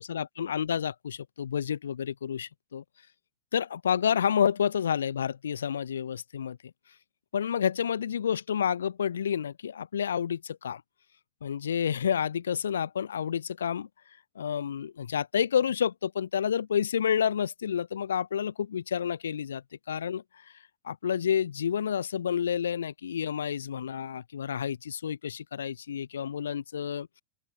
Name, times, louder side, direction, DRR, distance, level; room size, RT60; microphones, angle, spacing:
voice 1, 0.0-2.8 3.5-6.6 7.3-10.8 11.4-13.9 14.4-20.2 20.8-27.1, left 8 dB, 65° left, 0.8 m, -29 dB
open air
figure-of-eight pair, 90°, 0 cm